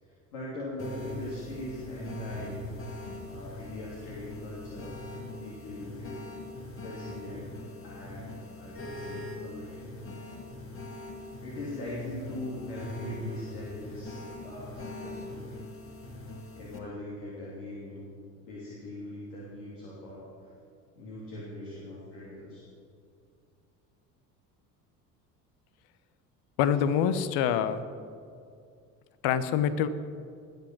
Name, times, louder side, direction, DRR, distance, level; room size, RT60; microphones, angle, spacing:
voice 1, 0.0-2.6 3.2-4.9 5.3-6.3 6.8-9.9 11.1-15.6 16.5-18.1 18.3-20.3 20.9-22.6, left 1 dB, 70° left, -6 dB, 3.4 m, -41 dB
sound 1, 0.8-16.8, left 1 dB, 25° left, 2.0 m, -42 dB
voice 2, 26.6-27.8 29.2-29.9, left 8 dB, 55° left, 13 dB, 1.1 m, -25 dB
20.0 x 8.1 x 6.1 m, 2.3 s
figure-of-eight pair, 65°, 48 cm